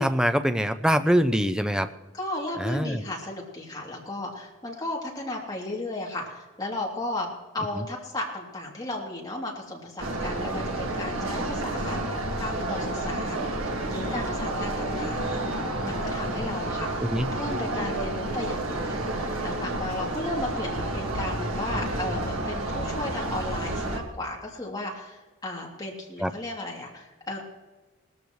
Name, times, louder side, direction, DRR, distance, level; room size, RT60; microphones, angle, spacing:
voice 1, 0.0-1.9 2.6-3.0 7.8-7.9 17.0-17.3 26.2-26.3, equal, 5° right, 9 dB, 0.5 m, -24 dB
voice 2, 2.1-7.3 7.5-27.4, left 1 dB, 20° left, -2 dB, 2.9 m, -35 dB
sound 1, 10.0-24.0, right 1 dB, 70° right, 2.0 m, -30 dB
19.0 x 14.0 x 3.2 m, 1.2 s
head